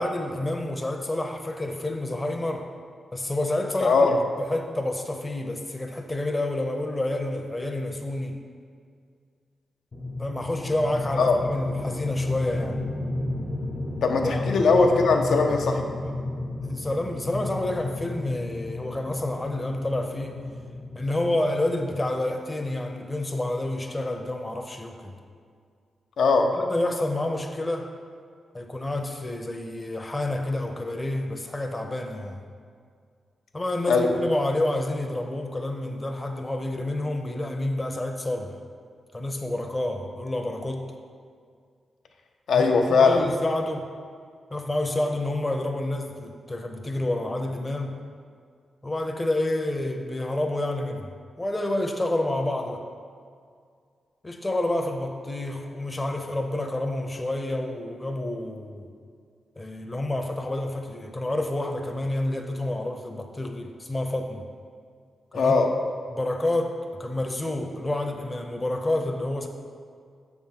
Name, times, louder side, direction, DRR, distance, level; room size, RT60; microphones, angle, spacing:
voice 1, 0.0-2.7 3.1-4.1 4.4-8.4 10.2-12.8 14.3-14.4 16.6-20.4 21.0-25.1 26.6-27.9 28.5-32.4 33.5-38.6 39.1-40.9 42.5-43.9 44.5-48.0 48.8-51.1 51.4-52.8 54.2-58.9 59.6-64.4 65.3-65.5 66.1-69.5, left 1 dB, 25° left, 3 dB, 0.6 m, -29 dB
voice 2, 3.8-4.2 11.2-11.3 14.0-15.8 26.2-26.6 33.9-34.1 42.5-43.2 65.3-65.7, left 4 dB, 80° left, 3 dB, 0.7 m, -20 dB
sound 1, 9.9-22.1, left 2 dB, 55° left, 1.0 m, -33 dB
7.2 x 3.6 x 5.6 m, 2.1 s
cardioid pair, 65°, 0 cm